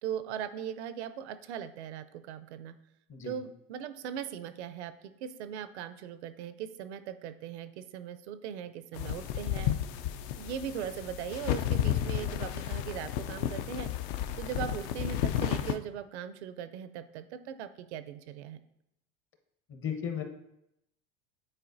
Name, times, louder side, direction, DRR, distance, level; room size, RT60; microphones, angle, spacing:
voice 1, 0.0-2.7 3.2-4.9 5.2-9.8 10.4-13.9 14.4-18.6, right 9 dB, 85° right, 11 dB, 0.6 m, -39 dB
sound 1, 8.9-15.7, left 11 dB, 60° left, 0.5 m, -32 dB
voice 2, 19.7-20.2, left 8 dB, 40° left, 5 dB, 1.0 m, -35 dB
8.9 x 4.2 x 2.6 m, 0.82 s
supercardioid pair, 105°, 33 cm